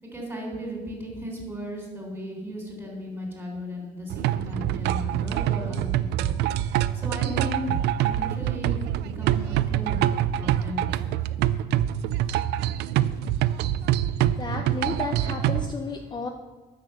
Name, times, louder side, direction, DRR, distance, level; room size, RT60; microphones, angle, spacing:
voice 1, 0.0-6.3 6.9-10.1 10.4-11.2, equal, 10° right, 0 dB, 3.7 m, -36 dB
sound 1, 4.1-15.7, right 12 dB, 80° right, 0.4 m, -25 dB
voice 2, 14.4-16.3, left 4 dB, 25° left, 4 dB, 0.8 m, -32 dB
9.8 x 6.6 x 6.6 m, 1.3 s
cardioid pair, 110°, 17 cm